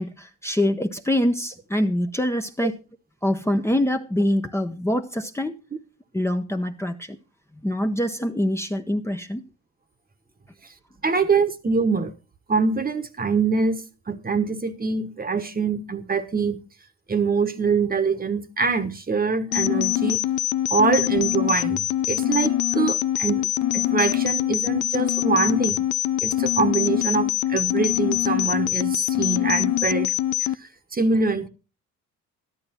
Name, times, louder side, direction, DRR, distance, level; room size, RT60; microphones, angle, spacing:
voice 1, 0.0-2.8 3.2-5.6 6.1-7.2 7.6-9.4, left 1 dB, 10° left, 0.9 m, -24 dB
voice 2, 11.0-12.1 12.5-13.8 14.1-16.6 17.1-20.2 20.7-23.4 23.7-25.8 26.2-30.1 30.4-30.5 30.9-31.5, right 4 dB, 30° right, 1.3 m, -24 dB
sound 1, 19.5-30.5, left 14 dB, 80° left, 0.5 m, -24 dB
13.0 x 11.0 x 4.4 m
cardioid pair, 90°, 30 cm